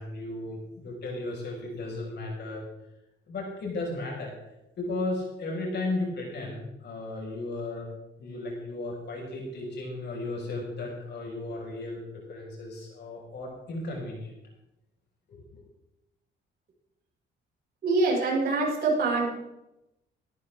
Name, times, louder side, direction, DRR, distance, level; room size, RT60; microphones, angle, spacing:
voice 1, 0.0-2.6 3.3-4.3 4.8-7.9 8.2-14.3 15.3-15.6, left 2 dB, 60° left, -2 dB, 6.0 m, -35 dB
voice 2, 17.8-19.3, right 3 dB, 50° right, -5 dB, 7.1 m, -24 dB
18.0 x 14.0 x 3.8 m, 0.90 s
cardioid pair, 90°, 20 cm